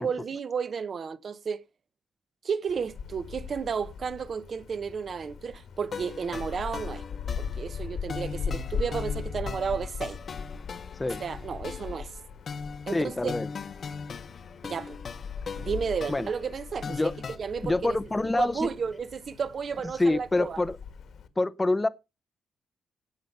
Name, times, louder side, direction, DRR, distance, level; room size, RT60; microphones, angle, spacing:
voice 1, 0.0-1.6 2.4-7.0 7.4-10.2 11.2-12.1 12.9-13.3 14.6-15.0 15.5-17.0 17.4-18.0 18.4-20.6, right 6 dB, 40° right, 0.8 m, -32 dB
Wind, 2.7-21.3, left 6 dB, 65° left, 1.5 m, -39 dB
sound 1, 5.9-17.4, left 5 dB, 40° left, 1.0 m, -40 dB
voice 2, 12.9-13.5 16.1-16.3 16.9-17.1 17.6-18.7 20.0-20.8 21.4-21.9, left 2 dB, 15° left, 0.6 m, -26 dB
17.0 x 5.7 x 5.4 m
wide cardioid pair, 155°, 0 cm